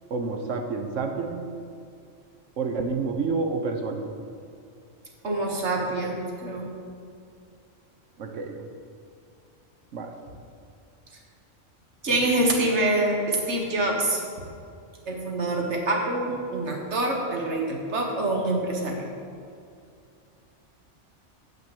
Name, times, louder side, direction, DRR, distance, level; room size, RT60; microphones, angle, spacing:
voice 1, 0.1-1.4 2.6-4.0 8.2-8.7 9.9-10.1, right 4 dB, 90° right, 4 dB, 1.2 m, -29 dB
voice 2, 5.2-6.7 12.0-14.2 15.1-19.1, right 2 dB, 70° right, 0 dB, 1.7 m, -26 dB
9.0 x 5.0 x 7.6 m, 2.4 s
omnidirectional pair, 1.2 m